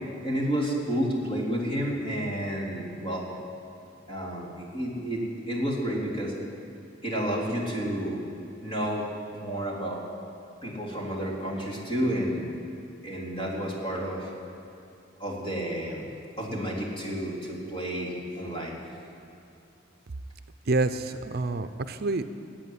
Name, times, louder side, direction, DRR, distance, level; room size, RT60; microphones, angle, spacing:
voice 1, 0.2-3.2 4.1-6.3 7.0-8.2 8.6-9.1 9.3-10.0 10.6-12.5 13.0-14.3 15.2-16.1 16.4-18.7, equal, 30° left, -4 dB, 3.5 m, -30 dB
voice 2, 20.7-22.3, right 3 dB, 55° right, 10 dB, 0.6 m, -27 dB
16.5 x 9.0 x 9.5 m, 2.7 s
head